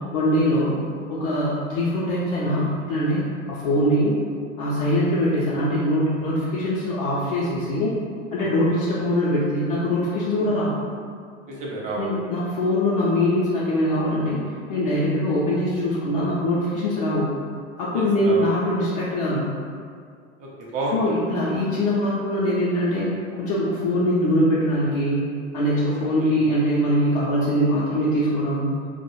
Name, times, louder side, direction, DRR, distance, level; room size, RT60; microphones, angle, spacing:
voice 1, 0.1-0.8 1.1-3.2 3.5-4.2 4.6-7.9 8.3-10.8 12.0-14.4 14.7-17.3 17.8-19.5 20.9-25.3 25.5-28.7, equal, 45° left, -7 dB, 0.5 m, -22 dB
voice 2, 8.4-8.8 10.4-10.5 11.5-12.0 17.9-18.5 20.4-21.0 25.8-26.5, right 2 dB, 20° right, -4 dB, 0.4 m, -32 dB
2.1 x 2.0 x 3.0 m, 2.2 s
figure-of-eight pair, 85°, 38 cm